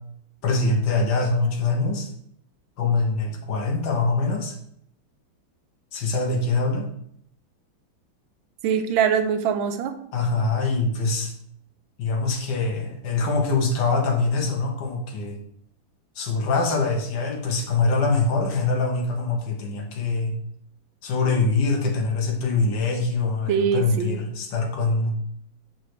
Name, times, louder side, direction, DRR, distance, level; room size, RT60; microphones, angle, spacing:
voice 1, 0.4-2.1 2.8-4.5 5.9-6.9 10.1-11.3 12.0-15.4 16.2-20.3 21.0-25.2, left 3 dB, 70° left, 1 dB, 1.7 m, -24 dB
voice 2, 8.6-9.9 23.5-24.2, right 7 dB, 85° right, 8 dB, 1.4 m, -23 dB
7.6 x 4.8 x 3.1 m, 0.70 s
omnidirectional pair, 2.1 m